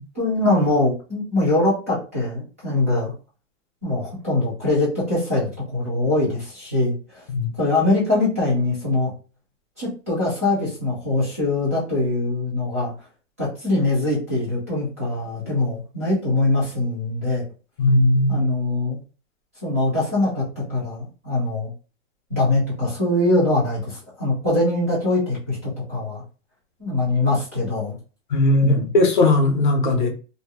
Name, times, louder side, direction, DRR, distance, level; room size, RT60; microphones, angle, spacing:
voice 1, 0.1-3.1 3.8-7.2 7.6-9.1 9.8-12.9 13.4-17.4 18.3-19.0 19.6-21.7 22.3-26.2 26.8-28.0 28.6-28.9, left 2 dB, 10° right, 0.4 m, -22 dB
voice 2, 17.8-18.4 28.3-30.1, left 2 dB, 40° left, 0.6 m, -18 dB
2.6 x 2.0 x 3.3 m
hypercardioid pair, 180°, 39 cm